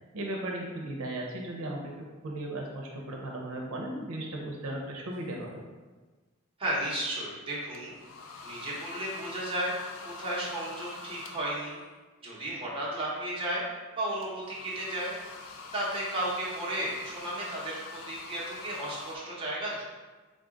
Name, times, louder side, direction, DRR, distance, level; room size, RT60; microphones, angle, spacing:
voice 1, 0.1-5.6, right 1 dB, 85° right, -1 dB, 0.6 m, -36 dB
sound 1, 5.1-5.4 7.7-11.8 14.2-19.2, left 3 dB, 70° left, 0.4 m, -45 dB
voice 2, 6.6-8.0 8.4-9.7 10.0-11.8 12.2-13.6 13.9-15.1 15.7-19.8, right 1 dB, 25° right, -7 dB, 0.9 m, -34 dB
3.7 x 2.4 x 3.7 m, 1.3 s
head